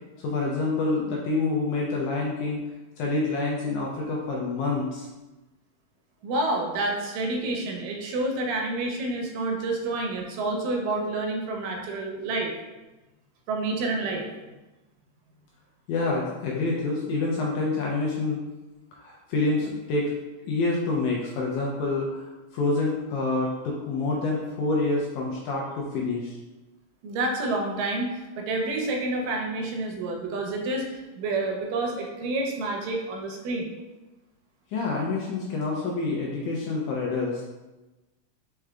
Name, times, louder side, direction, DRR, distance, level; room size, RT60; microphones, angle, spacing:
voice 1, 0.2-2.6 3.0-5.1 15.9-18.4 18.9-20.1 20.4-26.4 34.7-37.4, left 3 dB, 80° left, -2 dB, 1.8 m, -27 dB
voice 2, 6.2-12.5 13.5-14.3 27.0-33.7, right 2 dB, 80° right, 1 dB, 2.2 m, -29 dB
4.8 x 4.6 x 2.2 m, 1.1 s
omnidirectional pair, 4.0 m